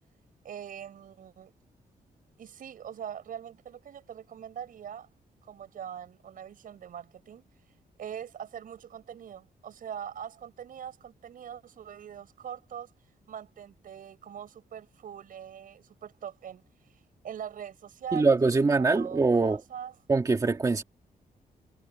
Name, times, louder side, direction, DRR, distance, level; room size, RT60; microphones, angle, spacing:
voice 1, 0.4-1.5 2.4-5.1 5.4-7.5 8.0-12.9 13.3-16.6 16.9-19.9, right 9 dB, 65° right, 6.3 m, -42 dB
voice 2, 18.1-19.6 20.1-20.8, right 3 dB, 25° right, 1.8 m, -23 dB
wide cardioid pair, 150°, 15 cm